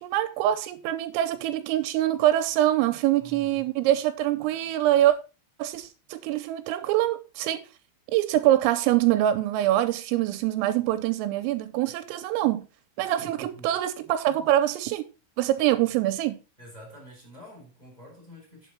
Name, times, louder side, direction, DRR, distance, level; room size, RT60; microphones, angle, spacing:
voice 1, 0.0-5.2 5.6-7.7 8.1-12.7 13.0-15.0 15.4-16.4, right 13 dB, 85° right, 3.4 m, -24 dB
voice 2, 3.2-3.7 13.2-13.7 16.6-18.7, equal, 10° left, 4.4 m, -47 dB
9.3 x 7.8 x 4.5 m
omnidirectional pair, 6.0 m